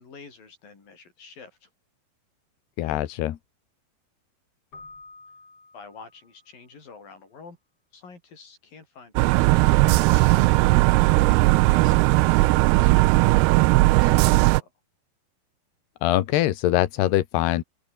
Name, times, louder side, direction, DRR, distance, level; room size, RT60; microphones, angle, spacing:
voice 1, 0.0-1.7 5.7-7.6 7.9-14.7, left 4 dB, 60° left, 8.0 m, -48 dB
voice 2, 2.8-3.4 16.0-17.6, left 14 dB, 90° left, 3.4 m, -23 dB
Keyboard (musical), 4.7-6.5, left 3 dB, 35° left, 8.9 m, -48 dB
sound 1, 9.2-14.6, right 22 dB, 85° right, 2.6 m, -18 dB
open air
omnidirectional pair, 4.6 m